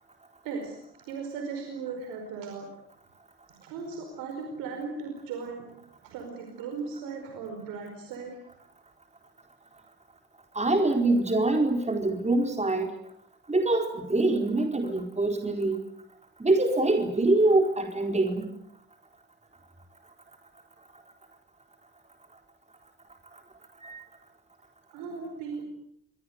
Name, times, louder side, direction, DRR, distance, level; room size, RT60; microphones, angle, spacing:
voice 1, 0.4-0.8 1.1-2.7 3.6-5.6 6.0-8.4 24.9-25.6, right 5 dB, 85° right, 4 dB, 5.0 m, -37 dB
voice 2, 10.5-12.9 13.5-15.8 16.4-18.4 23.8-24.0, right 2 dB, 20° right, 3 dB, 4.3 m, -24 dB
28.5 x 23.0 x 8.1 m, 0.74 s
supercardioid pair, 60°, 33 cm